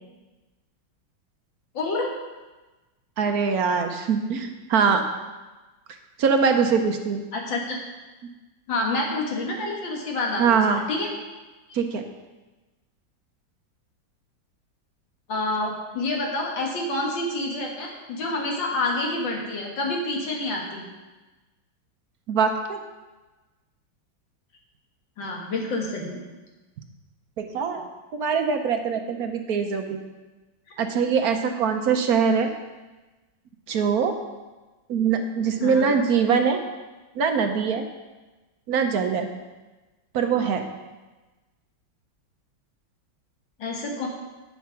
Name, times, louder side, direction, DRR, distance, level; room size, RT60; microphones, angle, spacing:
voice 1, 1.7-2.1 7.3-7.8 8.7-11.1 15.3-20.8 25.2-26.2 27.7-27.8 35.6-35.9 43.6-44.1, left 2 dB, 70° left, 0 dB, 2.4 m, -28 dB
voice 2, 3.2-5.0 6.2-7.2 10.4-10.8 11.7-12.0 22.3-22.8 27.4-27.9 28.1-30.0 30.8-32.5 33.7-34.2 34.9-36.6 37.1-37.9 38.7-39.3 40.1-40.7, right 6 dB, 60° right, 5 dB, 1.1 m, -23 dB
9.3 x 7.1 x 5.8 m, 1.2 s
omnidirectional pair, 2.2 m